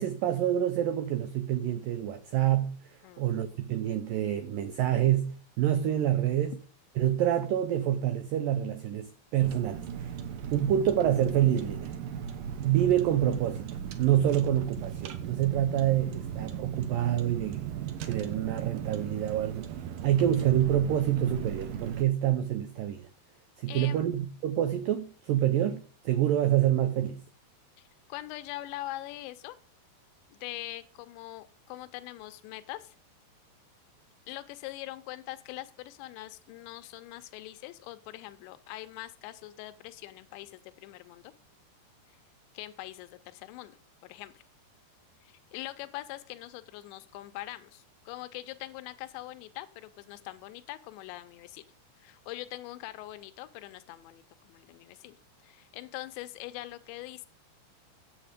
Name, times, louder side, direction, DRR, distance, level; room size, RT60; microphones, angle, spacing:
voice 1, 0.0-6.5 7.0-10.1 10.5-11.9 12.6-19.7 20.0-23.1 23.6-27.2, right 11 dB, 90° right, 1.9 m, -27 dB
Car, 9.4-22.0, right 8 dB, 70° right, 2.3 m, -37 dB
voice 2, 23.7-24.0 27.8-29.6 30.3-33.0 34.3-41.3 42.5-43.8 44.0-44.4 45.2-51.6 52.0-55.2 55.4-57.3, left 16 dB, 85° left, 3.0 m, -43 dB
10.0 x 8.0 x 5.1 m
omnidirectional pair, 5.1 m